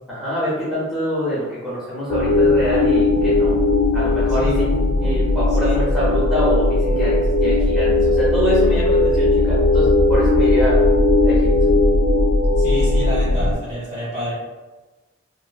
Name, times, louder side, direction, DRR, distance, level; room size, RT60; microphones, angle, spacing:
voice 1, 0.1-3.6 3.9-4.7 5.0-7.1 7.4-10.8 11.2-11.5, equal, ahead, -10 dB, 0.7 m, -25 dB
sound 1, 2.1-13.5, left 2 dB, 70° left, 0.3 m, -17 dB
voice 2, 4.4-4.8 5.6-5.8 12.6-14.3, equal, 40° right, -7 dB, 1.1 m, -29 dB
3.0 x 2.5 x 2.2 m, 1.2 s
head